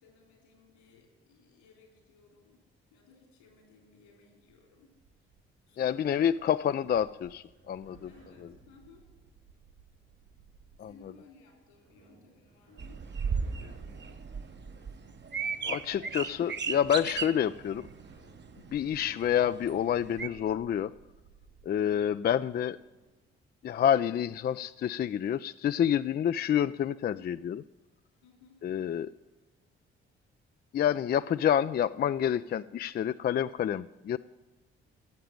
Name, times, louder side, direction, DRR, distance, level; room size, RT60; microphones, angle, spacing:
voice 1, 0.0-2.6 2.9-5.0 5.7-6.3 8.1-9.0 10.7-16.5 18.8-19.2 28.2-28.6, left 4 dB, 80° left, 2 dB, 3.5 m, -59 dB
sound 1, 4.7-23.1, right 3 dB, 90° right, 4.4 m, -59 dB
voice 2, 5.8-8.1 10.8-10.9 15.7-17.9 18.7-20.9 21.6-22.8 23.6-27.6 28.6-29.1 30.7-34.2, left 9 dB, 30° left, 14 dB, 0.4 m, -28 dB
sound 2, 12.8-20.3, right 6 dB, 35° right, 0.9 m, -36 dB
15.0 x 7.8 x 9.0 m, 1.1 s
figure-of-eight pair, 40°, 31 cm